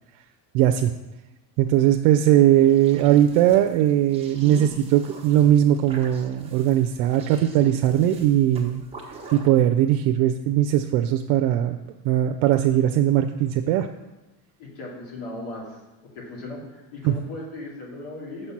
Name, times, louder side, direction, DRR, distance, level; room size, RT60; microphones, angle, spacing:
voice 1, 0.5-0.9 1.6-8.8 9.3-11.8 12.0-13.9 17.0-17.1, right 11 dB, 80° right, 5 dB, 0.6 m, -19 dB
sound 1, 2.4-9.5, right 3 dB, 10° right, 1.0 m, -43 dB
voice 2, 14.6-15.8 16.1-18.5, left 2 dB, 70° left, -3 dB, 2.5 m, -37 dB
6.7 x 4.3 x 5.9 m, 1.1 s
cardioid pair, 130°, 50 cm